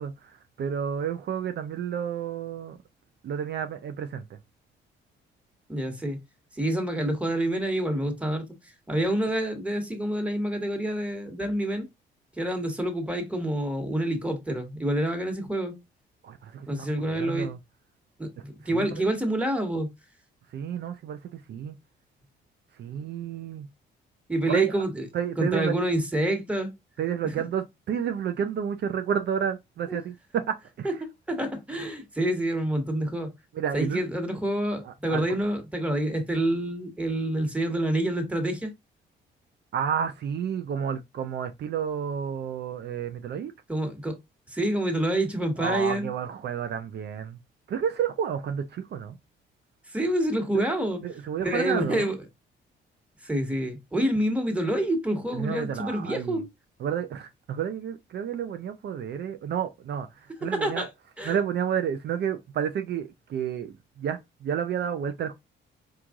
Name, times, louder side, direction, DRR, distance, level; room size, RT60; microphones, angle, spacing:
voice 1, 0.0-2.8 3.2-4.4 16.2-17.6 18.7-19.1 20.5-21.8 22.8-23.7 24.5-24.8 25.1-25.8 27.0-30.9 33.5-34.1 34.8-35.4 39.7-43.5 45.6-47.4 47.7-49.2 50.5-50.6 51.0-52.1 55.3-56.4 56.8-60.9 61.2-65.3, right 8 dB, 60° right, 0.5 m, -31 dB
voice 2, 5.7-6.2 6.6-8.4 8.9-11.9 12.4-15.7 16.7-17.5 18.2-19.9 24.3-25.0 25.4-26.7 27.2-27.3 29.9-30.0 31.3-33.3 33.7-38.7 43.7-44.2 44.5-46.1 49.9-51.0 51.4-52.2 53.2-56.4 60.4-60.9 61.2-61.4, right 1 dB, 5° right, 1.4 m, -27 dB
4.7 x 2.5 x 3.6 m
cardioid pair, 90°, 20 cm